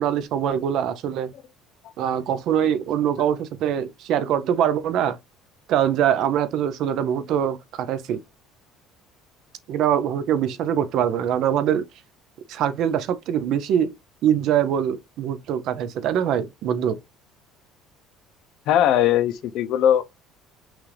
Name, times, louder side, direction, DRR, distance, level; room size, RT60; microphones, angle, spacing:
voice 1, 0.0-1.3 2.0-5.2 5.7-8.2 9.7-11.8 12.5-13.9 14.2-17.0, right 9 dB, 55° right, 0.5 m, -23 dB
voice 2, 18.7-20.0, left 10 dB, 55° left, 0.6 m, -20 dB
5.9 x 2.5 x 3.3 m
cardioid pair, 165°, 0 cm